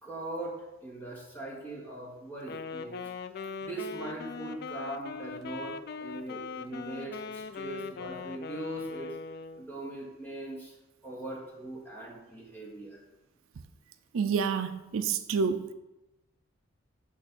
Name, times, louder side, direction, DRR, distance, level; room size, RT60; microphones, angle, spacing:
voice 1, 0.0-3.1 3.6-9.2 9.6-10.7 11.0-13.0, right 2 dB, 10° left, -5 dB, 1.9 m, -40 dB
Wind instrument woodwind instrument, 2.4-9.7, left 5 dB, 45° left, 0.3 m, -40 dB
voice 2, 14.1-15.7, right 6 dB, 70° right, 9 dB, 0.4 m, -28 dB
8.6 x 3.2 x 6.0 m, 1.0 s
head